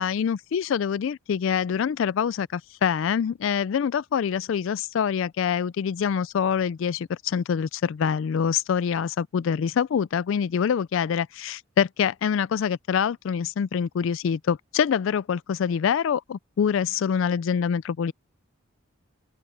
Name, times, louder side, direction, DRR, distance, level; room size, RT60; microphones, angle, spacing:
voice 1, 0.0-18.1, left 7 dB, 65° left, 0.3 m, -25 dB
open air
head